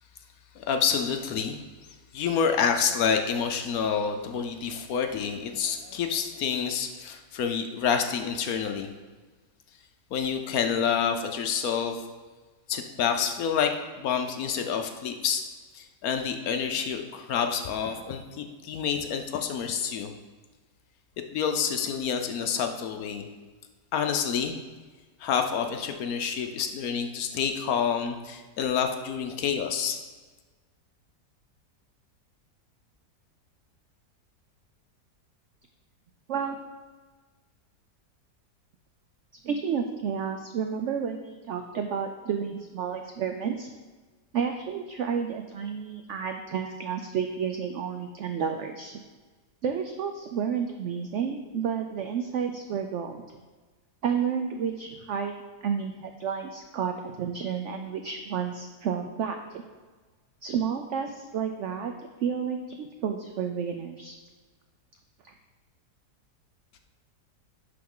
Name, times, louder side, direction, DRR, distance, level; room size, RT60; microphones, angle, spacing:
voice 1, 0.6-1.6 2.1-8.9 10.1-12.0 12.7-15.4 15.7-20.1 21.3-23.3 23.9-24.6 25.2-30.0, left 7 dB, 70° left, 6 dB, 1.0 m, -28 dB
voice 2, 39.4-43.7 44.3-49.0 49.6-53.2 54.0-59.6 60.4-61.9 62.2-64.2 65.2-65.3, right 7 dB, 75° right, 5 dB, 0.6 m, -31 dB
11.0 x 3.9 x 3.7 m, 1.4 s
omnidirectional pair, 1.8 m